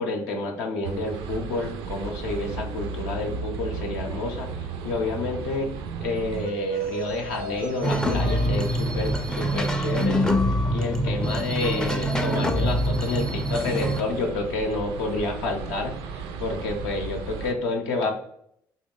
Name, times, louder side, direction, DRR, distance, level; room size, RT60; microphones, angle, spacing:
voice 1, 0.0-5.7 6.0-10.2 10.7-15.9 16.4-18.1, left 3 dB, 70° left, 2 dB, 0.6 m, -29 dB
sound 1, 0.8-17.5, right 5 dB, 65° right, 0.3 m, -35 dB
sound 2, 7.8-14.0, equal, 5° left, 0.4 m, -25 dB
3.0 x 2.1 x 3.6 m, 0.69 s
figure-of-eight pair, 50°, 10 cm